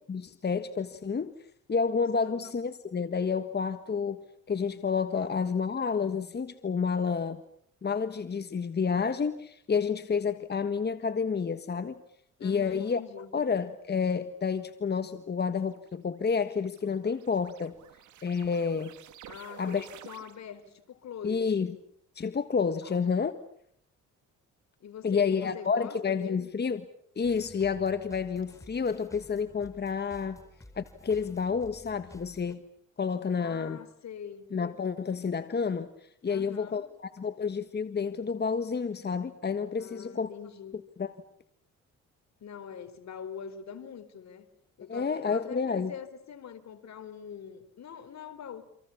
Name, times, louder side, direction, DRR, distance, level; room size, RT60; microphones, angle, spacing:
voice 1, 0.1-1.4 1.7-7.4 7.8-12.0 12.4-13.0 13.3-17.8 18.2-18.9 19.6-19.8 21.2-21.7 22.1-23.4 25.0-26.8 27.1-30.4 30.7-32.6 33.0-33.8 34.5-36.9 37.2-40.3 41.0-41.1 44.9-45.9, left 5 dB, 35° left, 10 dB, 1.6 m, -30 dB
voice 2, 2.2-2.5 5.2-5.3 12.4-13.3 19.3-21.6 22.8-23.0 24.8-26.5 33.4-34.5 36.2-36.9 39.8-40.8 42.4-44.5 44.8-48.6, left 7 dB, 65° left, 10 dB, 4.2 m, -43 dB
sound 1, 15.7-20.7, right 11 dB, 75° right, 2.6 m, -52 dB
sound 2, 27.2-32.6, left 1 dB, 10° left, 4.3 m, -53 dB
29.0 x 26.5 x 7.2 m, 0.68 s
cardioid pair, 90°, 30 cm